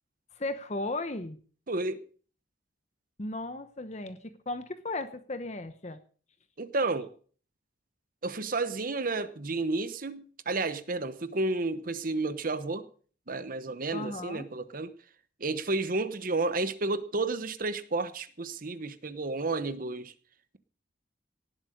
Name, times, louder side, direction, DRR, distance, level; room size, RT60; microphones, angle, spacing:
voice 1, 0.3-1.4 3.2-6.0 13.9-14.5, left 2 dB, 35° left, 10 dB, 1.0 m, -36 dB
voice 2, 1.7-2.0 6.6-7.1 8.2-12.9 13.3-14.9 15.4-20.1, right 3 dB, 45° right, 13 dB, 0.9 m, -31 dB
18.0 x 8.0 x 6.5 m, 0.44 s
head